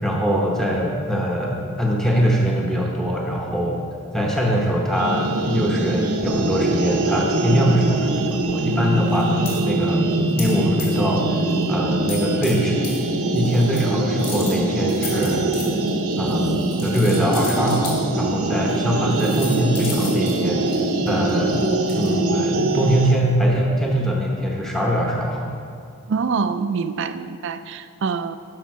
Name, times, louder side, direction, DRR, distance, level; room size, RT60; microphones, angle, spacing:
voice 1, 0.0-3.8 4.1-10.1 10.4-11.4 11.7-12.9 13.3-15.5 16.2-20.6 21.0-25.5, equal, ahead, -2 dB, 0.8 m, -22 dB
sound 1, 4.9-23.2, right 2 dB, 85° right, 0.8 m, -23 dB
sound 2, 9.1-9.6 10.4-10.5 10.8-11.1 11.5-11.6 12.1-12.5 12.8-13.0 13.3-13.8 14.2-17.9 18.7-18.8 19.1-22.1, left 3 dB, 40° left, 2.1 m, -34 dB
voice 2, 26.1-28.4, right 5 dB, 55° right, 11 dB, 0.4 m, -25 dB
12.0 x 5.6 x 4.7 m, 2.3 s
head